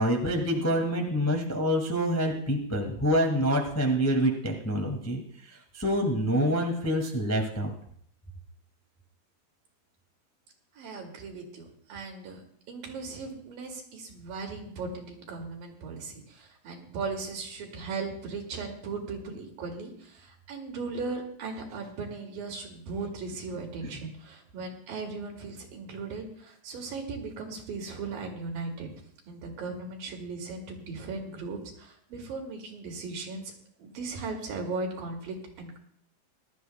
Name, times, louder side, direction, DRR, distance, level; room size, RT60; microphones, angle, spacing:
voice 1, 0.0-5.2 5.7-7.7, equal, 10° left, 1 dB, 0.8 m, -26 dB
voice 2, 10.8-12.4 12.7-28.9 29.3-33.5 33.8-35.8, right 4 dB, 85° right, 1 dB, 3.9 m, -37 dB
21.5 x 12.5 x 2.2 m, 0.65 s
omnidirectional pair, 3.9 m